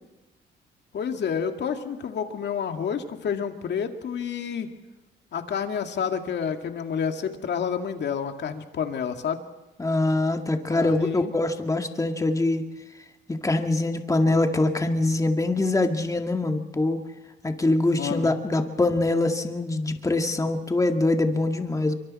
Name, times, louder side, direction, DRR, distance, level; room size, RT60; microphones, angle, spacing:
voice 1, 0.9-4.7 5.3-9.4 10.7-11.3 17.9-18.3, left 7 dB, 60° left, 5 dB, 2.3 m, -29 dB
voice 2, 9.8-12.7 13.3-17.1 17.4-21.9, left 2 dB, 15° left, 5 dB, 2.0 m, -24 dB
25.5 x 24.0 x 4.3 m, 1.1 s
cardioid pair, 90°, 20 cm